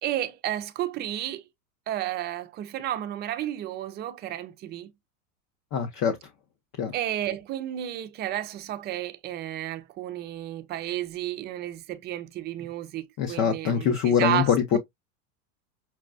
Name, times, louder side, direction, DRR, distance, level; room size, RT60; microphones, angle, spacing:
voice 1, 0.0-1.5 1.9-4.9 6.9-14.8, right 12 dB, 25° right, 0.4 m, -32 dB
voice 2, 5.7-6.1 6.8-6.9 13.2-14.8, left 7 dB, 35° left, 0.7 m, -23 dB
5.9 x 2.1 x 2.4 m
hypercardioid pair, 115°, 47 cm